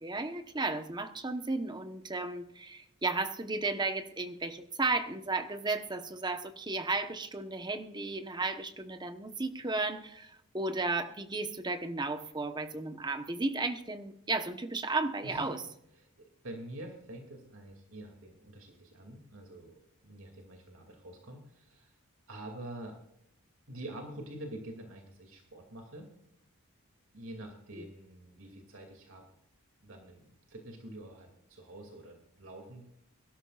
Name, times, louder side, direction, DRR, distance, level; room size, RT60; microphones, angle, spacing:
voice 1, 0.0-15.6, right 3 dB, 20° right, 8 dB, 1.0 m, -34 dB
voice 2, 15.2-15.6 16.0-21.9 22.3-23.0 23.7-26.1 27.1-29.2 29.8-32.8, right 1 dB, 65° right, 2 dB, 2.6 m, -46 dB
23.0 x 13.0 x 2.5 m, 0.78 s
head